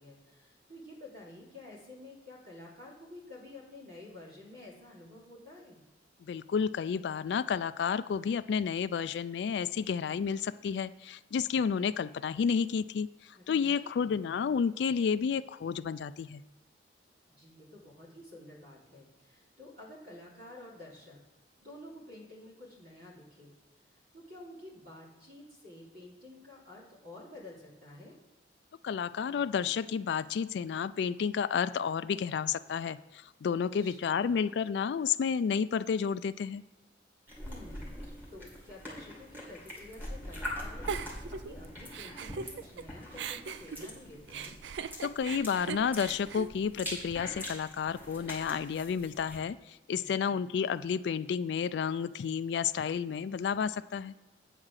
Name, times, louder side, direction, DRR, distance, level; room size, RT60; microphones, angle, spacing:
voice 1, 0.0-5.8 13.3-14.3 17.3-21.2 21.6-23.5 24.1-28.2 33.8-34.4 37.4-44.6 50.0-50.5, left 1 dB, 55° right, -4 dB, 3.0 m, -50 dB
voice 2, 6.2-16.4 28.8-36.6 45.0-54.1, left 6 dB, 65° left, 13 dB, 0.3 m, -31 dB
sound 1, 37.3-49.4, left 1 dB, 10° right, 2.3 m, -43 dB
Giggle, 40.9-42.8 43.1-47.4, right 6 dB, 75° right, 0.4 m, -40 dB
9.0 x 4.8 x 6.4 m, 1.1 s
head